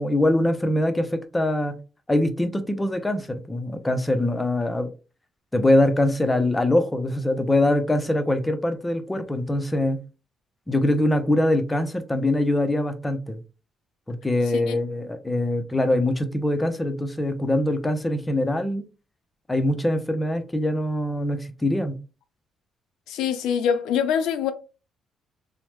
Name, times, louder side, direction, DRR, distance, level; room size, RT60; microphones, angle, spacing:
voice 1, 0.0-1.8 2.1-4.9 5.5-10.0 10.7-13.4 14.1-18.8 19.5-22.0, left 1 dB, 15° left, 0.5 m, -23 dB
voice 2, 23.1-24.5, left 8 dB, 90° left, 0.4 m, -24 dB
3.0 x 2.0 x 3.1 m
cardioid pair, 90°, 0 cm